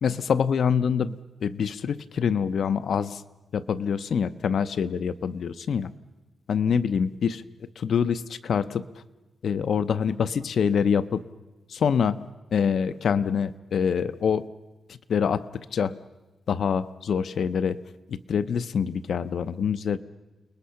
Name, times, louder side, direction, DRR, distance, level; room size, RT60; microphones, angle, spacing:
voice 1, 0.0-3.2 3.5-5.9 6.5-7.4 7.8-8.9 9.4-11.2 11.7-12.3 12.5-14.4 14.9-16.0 16.5-17.8 18.1-20.0, left 7 dB, 60° left, 14 dB, 0.7 m, -25 dB
29.5 x 20.5 x 5.8 m, 1.1 s
wide cardioid pair, 175°, 0 cm